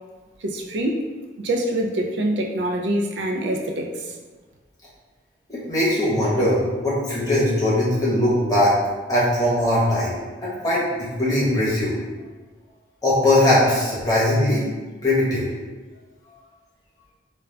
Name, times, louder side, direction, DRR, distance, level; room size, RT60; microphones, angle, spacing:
voice 1, 0.4-1.1 1.4-4.1, right 1 dB, 70° right, 2 dB, 0.4 m, -25 dB
voice 2, 5.5-8.7 9.1-12.0 13.0-14.6 15.0-15.5, left 1 dB, 20° left, -7 dB, 0.9 m, -20 dB
3.7 x 2.3 x 3.3 m, 1.3 s
head